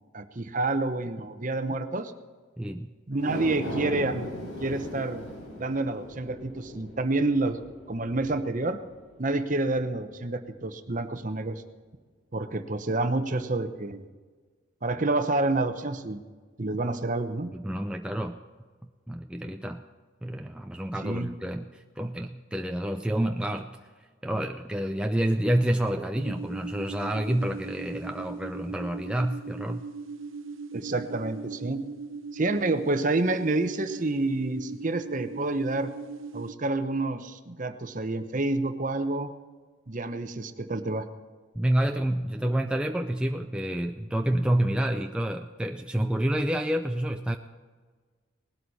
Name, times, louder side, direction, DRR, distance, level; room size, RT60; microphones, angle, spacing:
voice 1, 0.1-2.1 3.1-4.3 4.6-5.2 5.6-7.6 7.9-8.8 9.2-11.6 12.3-14.0 14.8-16.2 16.6-17.5 21.0-21.3 30.7-31.8 32.3-35.9 36.3-39.3 39.9-41.1, right 2 dB, 40° right, 9 dB, 0.9 m, -28 dB
voice 2, 2.6-2.9 17.5-18.4 19.1-19.8 20.2-23.7 24.2-29.8 41.6-47.4, right 1 dB, 5° right, 4 dB, 0.4 m, -28 dB
sound 1, 3.1-9.6 10.0-10.1, equal, 75° left, 5.7 m, -39 dB
sound 2, 26.2-36.5, right 4 dB, 75° right, 0.7 m, -39 dB
19.5 x 12.5 x 4.2 m, 1.5 s
head